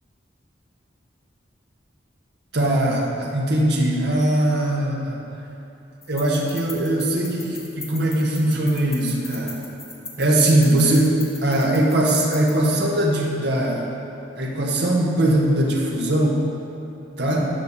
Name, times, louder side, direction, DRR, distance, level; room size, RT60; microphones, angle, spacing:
voice 1, 2.5-5.2 6.1-9.6 10.2-13.9 14.4-16.4 17.2-17.5, right 1 dB, 60° right, -2 dB, 1.6 m, -20 dB
sound 1, 6.0-12.7, left 4 dB, 15° left, 1.0 m, -40 dB
10.5 x 6.8 x 6.8 m, 2.8 s
head